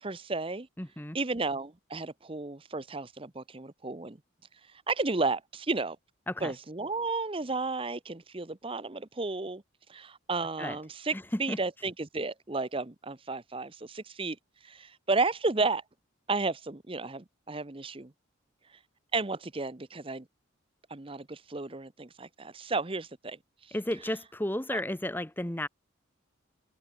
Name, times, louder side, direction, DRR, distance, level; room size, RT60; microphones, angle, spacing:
voice 1, 0.0-0.7 1.1-4.2 4.9-6.0 6.4-9.6 9.9-14.4 14.6-15.8 16.3-18.1 19.1-20.3 20.9-23.4 24.7-24.8, right 3 dB, 25° right, 0.9 m, -33 dB
voice 2, 0.8-1.2 6.3-6.5 10.6-10.8 11.1-11.6 23.7-25.7, left 1 dB, 10° left, 1.1 m, -33 dB
head